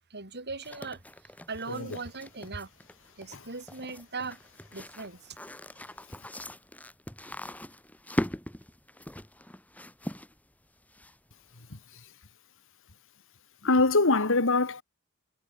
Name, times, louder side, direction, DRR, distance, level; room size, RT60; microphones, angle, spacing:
voice 1, 0.1-2.7 3.2-4.4 4.7-5.4, right 4 dB, 50° right, 6.8 m, -39 dB
sound 1, 0.6-11.4, equal, 5° left, 2.2 m, -40 dB
voice 2, 13.6-14.8, left 3 dB, 65° left, 2.1 m, -23 dB
head